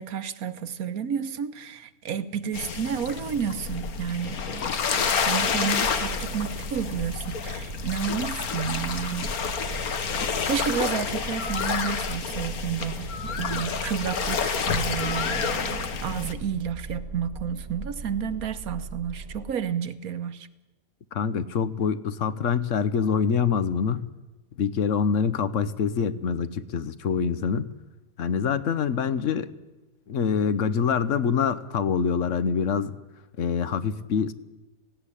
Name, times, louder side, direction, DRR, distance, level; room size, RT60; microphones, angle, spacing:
voice 1, 0.0-4.6 4.9-13.1 13.4-20.5, right 7 dB, 80° right, 1.5 m, -31 dB
sound 1, 2.5-16.3, left 6 dB, 90° left, 1.7 m, -29 dB
sound 2, 5.8-19.5, right 3 dB, 50° right, 1.5 m, -39 dB
voice 2, 21.1-24.0 24.6-27.7 28.2-29.5 30.1-33.0 33.4-34.3, left 6 dB, 60° left, 1.2 m, -25 dB
18.0 x 16.5 x 10.0 m
omnidirectional pair, 1.5 m